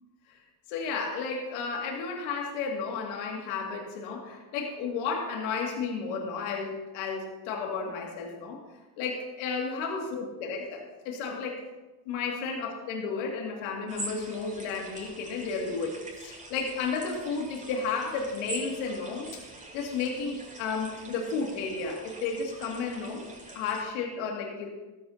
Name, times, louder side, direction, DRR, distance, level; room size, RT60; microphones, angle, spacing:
voice 1, 0.7-8.6 9.0-11.6 12.1-19.4 19.7-23.3 23.5-24.7, left 5 dB, 75° left, 0 dB, 2.4 m, -33 dB
sound 1, 13.9-23.8, right 2 dB, 15° right, 4.1 m, -44 dB
14.5 x 13.5 x 2.8 m, 1.2 s
supercardioid pair, 80°, 47 cm